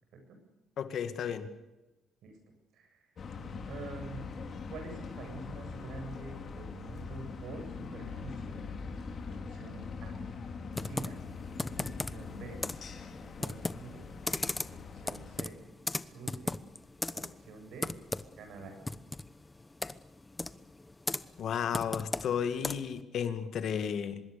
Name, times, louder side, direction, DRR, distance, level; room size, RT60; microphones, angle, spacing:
voice 1, 0.8-1.5 21.4-24.2, left 8 dB, 65° left, 10 dB, 2.2 m, -33 dB
voice 2, 2.7-3.1 3.6-4.3 4.7-8.6 9.3-10.1 10.8-11.2 11.7-12.6 13.2-14.0 14.7-15.5 16.1-16.6 17.1-17.9 18.4-18.8, right 3 dB, 80° right, 5 dB, 8.0 m, -46 dB
sound 1, 3.2-15.5, left 4 dB, 50° left, 4.2 m, -42 dB
Computer keyboard, 10.7-23.0, left 2 dB, 15° left, 1.0 m, -38 dB
25.0 x 21.5 x 6.9 m, 1.1 s
cardioid pair, 90°, 0 cm